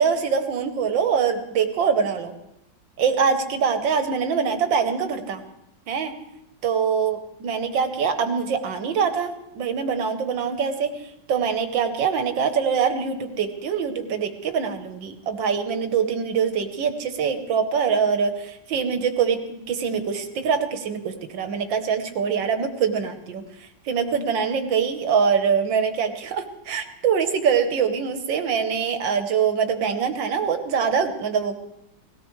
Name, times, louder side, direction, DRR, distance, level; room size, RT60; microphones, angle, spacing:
voice 1, 0.0-2.3 3.0-5.4 5.9-6.1 6.6-31.6, right 6 dB, 85° right, 8 dB, 1.8 m, -24 dB
18.5 x 17.0 x 3.2 m, 0.88 s
omnidirectional pair, 2.0 m